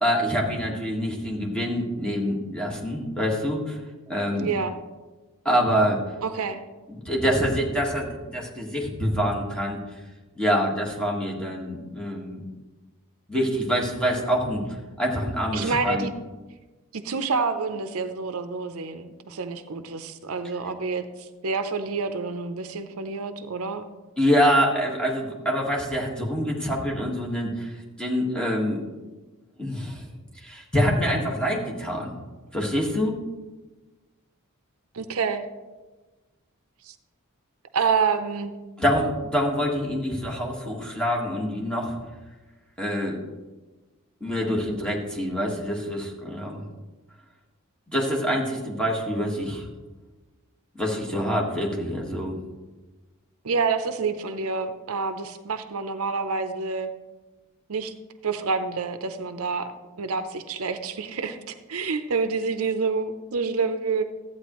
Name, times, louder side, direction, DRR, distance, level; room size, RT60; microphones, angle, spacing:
voice 1, 0.0-3.8 4.1-4.5 5.4-6.0 6.9-9.8 10.3-12.4 13.3-14.6 15.0-16.0 24.2-27.7 28.0-28.8 29.6-30.0 30.4-32.1 32.5-33.2 38.8-42.0 42.8-43.2 44.2-46.6 47.9-49.7 50.7-52.4, equal, 5° left, -2 dB, 1.6 m, -25 dB
voice 2, 4.3-4.7 6.2-6.6 15.5-16.1 16.9-23.9 34.9-35.4 36.8-36.9 37.7-38.5 53.4-56.9 57.7-57.9 58.2-64.0, right 4 dB, 75° right, 9 dB, 0.6 m, -28 dB
13.5 x 8.9 x 3.1 m, 1.2 s
head